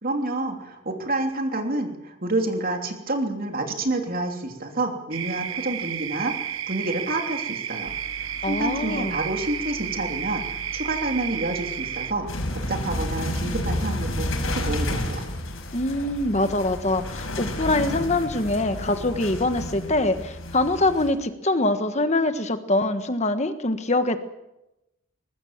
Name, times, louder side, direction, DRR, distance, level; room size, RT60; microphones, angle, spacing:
voice 1, 0.0-7.9 8.2-12.3 12.5-15.3, right 2 dB, 45° right, 4 dB, 3.1 m, -28 dB
sound 1, 5.1-12.1, right 10 dB, 75° right, 0.9 m, -32 dB
sound 2, 7.9-19.0, left 2 dB, 55° left, 0.9 m, -43 dB
voice 2, 8.4-9.2 15.7-24.2, left 2 dB, 35° left, 9 dB, 1.4 m, -24 dB
sound 3, 12.3-21.1, left 1 dB, 75° left, 5.6 m, -30 dB
23.0 x 20.0 x 7.4 m, 0.93 s
head